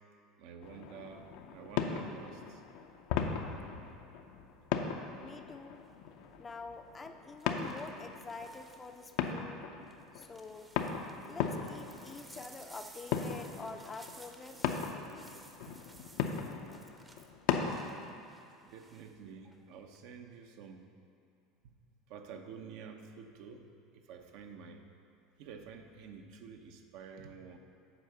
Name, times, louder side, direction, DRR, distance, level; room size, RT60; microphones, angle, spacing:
voice 1, 0.4-2.6 4.7-4.9 15.7-15.8 18.6-20.9 21.6-21.7 22.1-24.8 25.4-27.6, right 6 dB, 70° right, 5 dB, 0.7 m, -49 dB
sound 1, 0.6-18.1, left 7 dB, 70° left, 0.6 m, -38 dB
voice 2, 5.2-5.8 6.4-9.7 10.1-10.7 11.2-14.8, left 3 dB, 20° left, 7 dB, 0.5 m, -47 dB
Cereales-Versees dans unbol, 5.8-6.1 7.4-9.3 9.9-19.1 19.5-20.0, right 2 dB, 15° right, 0.7 m, -57 dB
7.9 x 4.7 x 6.7 m, 2.4 s
supercardioid pair, 115°, 0 cm